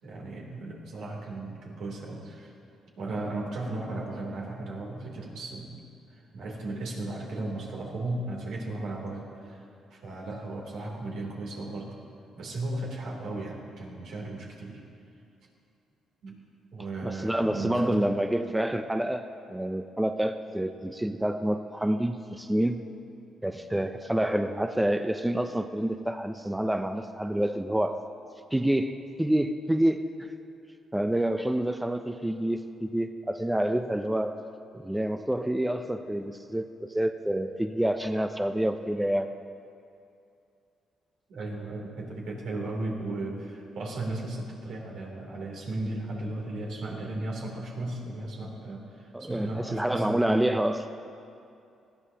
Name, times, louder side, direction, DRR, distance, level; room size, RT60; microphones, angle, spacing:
voice 1, 0.0-2.5 3.0-5.8 6.1-11.9 12.4-14.8 16.2-16.4 16.7-18.3 41.3-50.3, right 2 dB, 75° right, -2 dB, 3.1 m, -36 dB
voice 2, 17.0-19.2 19.5-22.8 23.4-28.0 28.5-30.3 30.9-34.4 34.7-39.3 49.1-50.9, right 1 dB, 5° right, 8 dB, 0.5 m, -28 dB
19.5 x 14.5 x 2.9 m, 2.5 s
cardioid pair, 90°, 0 cm